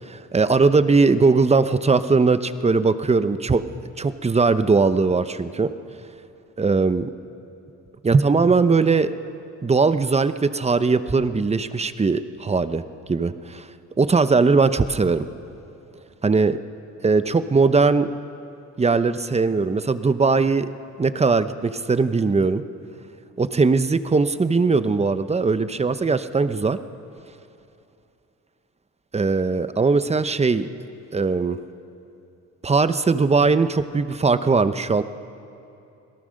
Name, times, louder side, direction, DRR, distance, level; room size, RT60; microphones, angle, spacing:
voice 1, 0.1-3.6 4.0-5.7 6.6-7.1 8.0-9.1 9.6-12.8 13.1-13.7 14.0-15.3 16.2-16.6 17.0-18.1 18.8-20.7 21.0-22.6 23.4-26.8 29.1-30.7 31.1-31.6 32.6-35.0, right 4 dB, 20° right, 12 dB, 0.9 m, -20 dB
27.0 x 17.5 x 6.5 m, 2.7 s
cardioid pair, 90°, 30 cm